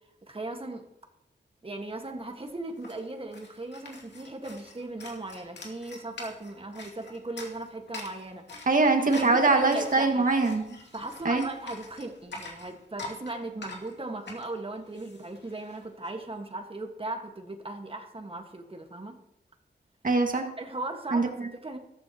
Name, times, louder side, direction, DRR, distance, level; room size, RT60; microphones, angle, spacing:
voice 1, 0.2-0.8 1.6-8.7 9.1-10.2 10.9-19.1 20.6-21.8, right 2 dB, 30° right, 4 dB, 1.6 m, -38 dB
sound 1, 2.0-2.1 2.3-16.1, left 2 dB, 80° left, 2.5 m, -45 dB
voice 2, 8.7-10.8 11.3-11.5 20.0-20.5 21.1-21.3, right 3 dB, 50° right, 3 dB, 2.0 m, -23 dB
14.0 x 13.0 x 3.0 m, 0.82 s
cardioid pair, 70°, 18 cm